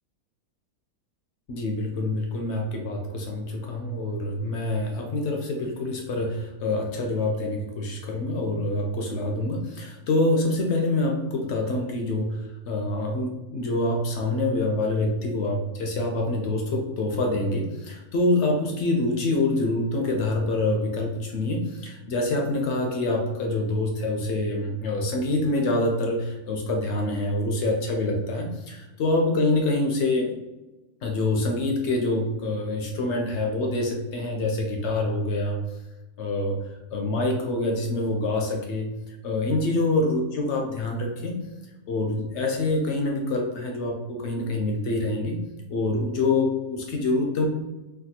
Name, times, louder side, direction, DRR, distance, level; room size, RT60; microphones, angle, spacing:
voice 1, 1.5-30.3 31.0-35.6 36.2-36.6 36.9-41.4 41.9-45.4 45.7-47.5, left 2 dB, 70° left, 1 dB, 0.7 m, -26 dB
3.4 x 2.2 x 2.7 m, 1.1 s
omnidirectional pair, 1.6 m